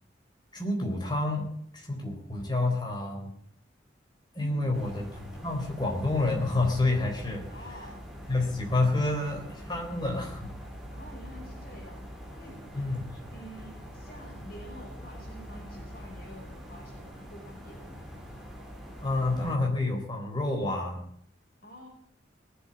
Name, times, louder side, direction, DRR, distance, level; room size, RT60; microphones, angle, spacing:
voice 1, 0.5-1.5 1.7-3.3 4.3-7.5 8.3-10.5 12.7-13.2 19.0-21.0, left 2 dB, 25° left, 1 dB, 3.8 m, -29 dB
voice 2, 4.4-4.9 7.5-8.1 10.9-12.1 12.3-12.7 13.3-18.0 21.6-21.9, equal, 50° left, 0 dB, 5.2 m, -48 dB
sound 1, 4.7-19.6, equal, ahead, 2.9 m, -44 dB
19.0 x 7.9 x 8.8 m, 0.65 s
head